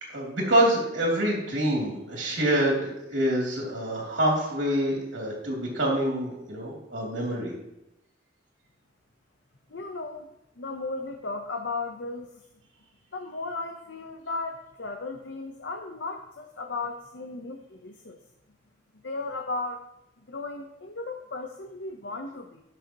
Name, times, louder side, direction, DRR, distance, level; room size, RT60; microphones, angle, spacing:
voice 1, 0.1-7.5, right 1 dB, 75° right, -2 dB, 2.8 m, -26 dB
voice 2, 9.7-10.3 10.6-12.3 13.1-18.2 19.0-19.8 20.3-22.6, left 3 dB, 70° left, 3 dB, 0.9 m, -35 dB
18.5 x 6.4 x 3.0 m, 0.86 s
head